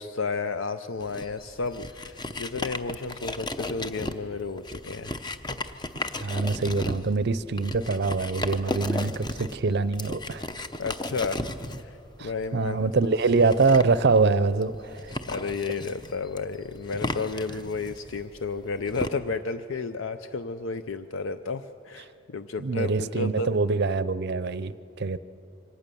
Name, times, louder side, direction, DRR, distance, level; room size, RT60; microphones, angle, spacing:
voice 1, 0.0-5.2 10.8-11.4 11.8-12.8 15.3-23.5, left 4 dB, 65° left, 10 dB, 0.6 m, -32 dB
sound 1, 1.0-19.1, left 2 dB, 20° left, 0.7 m, -35 dB
voice 2, 6.2-10.4 12.2-15.2 22.6-25.2, right 4 dB, 55° right, 16 dB, 0.6 m, -24 dB
24.5 x 18.0 x 6.9 m, 3.0 s
head